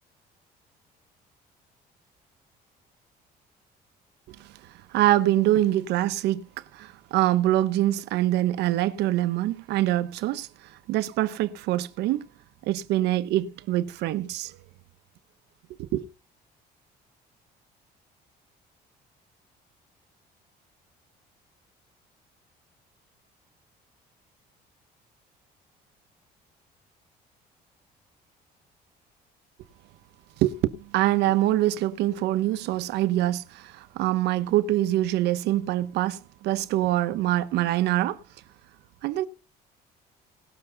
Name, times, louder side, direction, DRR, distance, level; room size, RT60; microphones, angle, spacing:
voice 1, 4.9-6.5 6.7-12.3 12.6-14.6 15.7-16.1 30.4-38.2 39.0-39.3, right 14 dB, 85° right, 1.1 m, -25 dB
19.0 x 6.9 x 4.0 m
cardioid pair, 110°, 17 cm